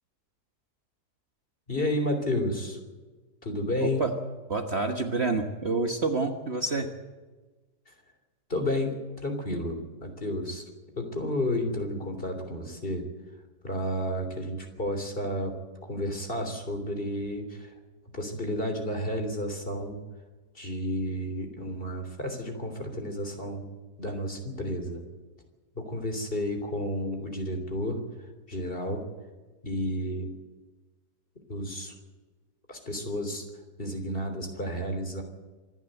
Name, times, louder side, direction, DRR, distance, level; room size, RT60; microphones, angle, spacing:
voice 1, 1.7-2.8 3.4-4.0 7.9-8.0 8.5-10.6 11.0-13.1 13.6-17.7 18.1-20.0 20.5-23.6 24.0-25.0 25.8-28.0 28.5-29.0 29.6-30.3 31.5-32.0 32.7-33.4 33.8-35.2, left 1 dB, 30° left, 5 dB, 3.5 m, -31 dB
voice 2, 3.8-4.1 4.5-6.9, right 3 dB, 40° right, 5 dB, 1.6 m, -28 dB
26.0 x 11.0 x 9.1 m, 1.3 s
omnidirectional pair, 1.8 m